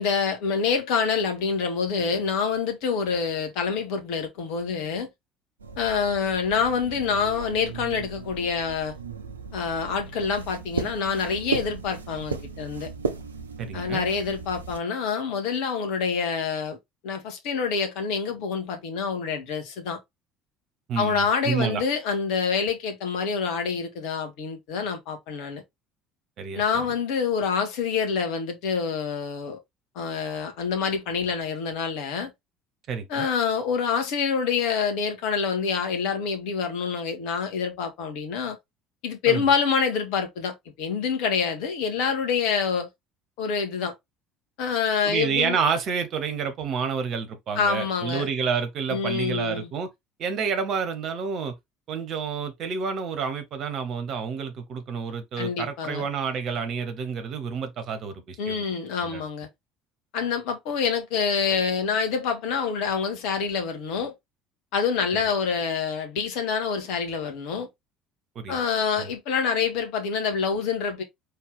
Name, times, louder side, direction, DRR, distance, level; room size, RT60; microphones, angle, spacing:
voice 1, 0.0-5.1 5.8-8.9 9.5-12.9 13.7-16.8 17.0-20.0 20.9-25.6 26.6-29.6 29.9-32.3 33.1-38.6 39.0-42.9 43.4-43.9 44.6-45.6 47.6-48.3 48.9-49.7 55.4-56.1 58.4-59.5 60.1-64.1 64.7-67.7 68.5-71.0, left 6 dB, 60° left, 1.3 m, -26 dB
sound 1, 5.6-14.8, right 5 dB, 85° right, 0.6 m, -36 dB
voice 2, 13.6-14.1 20.9-21.8 26.4-26.9 32.9-33.3 39.3-39.5 45.0-49.9 50.2-51.5 51.9-58.7 59.0-59.2 65.1-65.2 68.3-68.6 69.0-69.1, right 6 dB, 50° right, 1.3 m, -29 dB
4.6 x 3.3 x 3.5 m
figure-of-eight pair, 60°, 0 cm